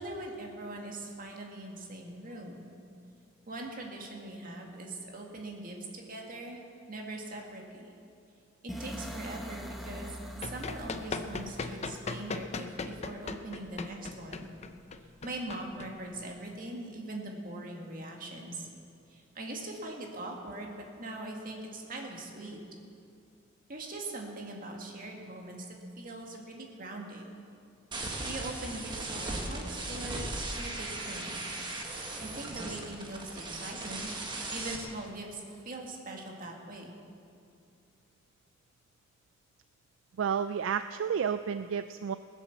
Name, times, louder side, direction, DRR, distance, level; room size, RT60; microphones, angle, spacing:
voice 1, 0.0-2.7 3.5-6.6 6.9-7.9 8.6-10.1 10.3-14.5 15.2-18.7 19.1-22.6 23.7-27.3 28.2-31.4 32.2-34.1 34.5-36.9, right 2 dB, 45° right, 0 dB, 2.0 m, -41 dB
sound 1, 8.7-12.6, equal, ahead, 1.0 m, -43 dB
Run, 10.4-16.5, left 3 dB, 35° left, 0.6 m, -39 dB
sound 2, 27.9-34.8, right 2 dB, 25° right, 1.4 m, -37 dB
voice 2, 40.2-42.2, right 7 dB, 70° right, 11 dB, 0.3 m, -31 dB
19.5 x 7.3 x 7.1 m, 2.5 s
head